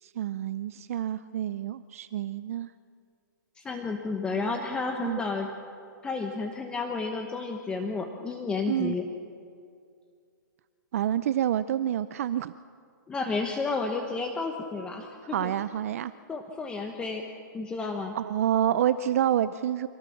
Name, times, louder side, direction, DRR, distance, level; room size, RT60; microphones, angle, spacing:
voice 1, 0.0-2.7 5.0-5.2 8.7-8.9 10.9-12.5 15.3-16.1 18.1-19.9, right 11 dB, 45° right, 15 dB, 0.5 m, -28 dB
voice 2, 3.6-5.5 6.0-9.1 13.1-15.5 16.3-17.3 17.5-18.1, left 4 dB, 10° left, 4 dB, 1.1 m, -31 dB
25.5 x 18.5 x 7.2 m, 2.3 s
hypercardioid pair, 160°, 11 cm